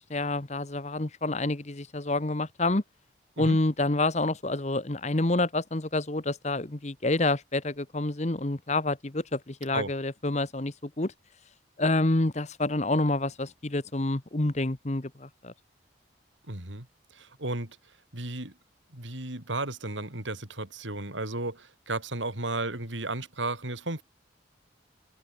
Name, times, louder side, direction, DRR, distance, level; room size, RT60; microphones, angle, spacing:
voice 1, 0.1-2.8 3.4-11.1 11.8-15.5, left 2 dB, 35° left, 1.2 m, -28 dB
voice 2, 16.5-16.9 17.1-17.8 18.1-18.5 18.9-24.0, right 2 dB, 85° right, 4.4 m, -34 dB
head